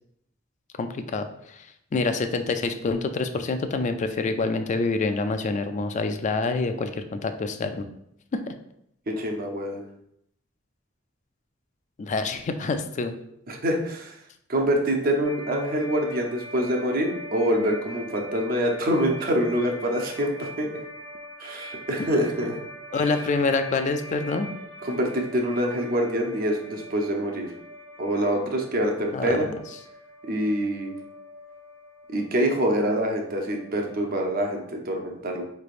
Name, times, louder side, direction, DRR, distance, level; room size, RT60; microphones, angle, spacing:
voice 1, 0.8-1.7 1.9-7.9 8.3-8.5 12.0-13.1 22.4-22.5 22.9-24.5 29.1-29.5, left 3 dB, 40° left, 8 dB, 0.4 m, -27 dB
voice 2, 9.1-9.8 13.5-14.1 14.5-20.8 21.4-22.5 24.8-27.5 28.0-29.5 30.3-30.9 32.1-35.4, equal, 50° right, 2 dB, 0.7 m, -25 dB
sound 1, 15.2-34.5, equal, 10° left, 0.8 m, -42 dB
4.8 x 3.3 x 2.5 m, 0.74 s
head